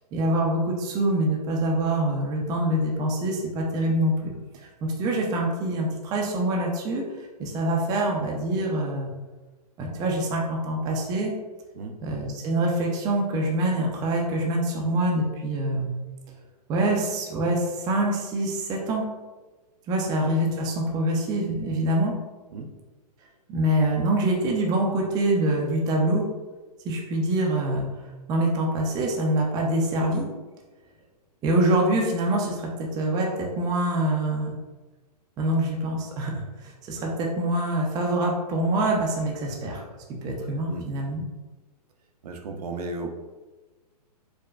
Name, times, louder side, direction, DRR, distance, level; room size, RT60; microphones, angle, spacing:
voice 1, 0.1-4.3 4.8-7.0 7.4-9.1 9.8-11.3 12.0-15.9 16.7-19.0 19.9-22.1 23.5-26.3 26.8-27.9 28.3-30.3 31.4-34.6 35.4-39.8 40.2-41.2, right 1 dB, 20° right, -1 dB, 0.4 m, -25 dB
voice 2, 42.2-43.1, right 3 dB, 65° right, 3 dB, 0.6 m, -34 dB
4.6 x 2.1 x 2.4 m, 1.2 s
hypercardioid pair, 135°, 21 cm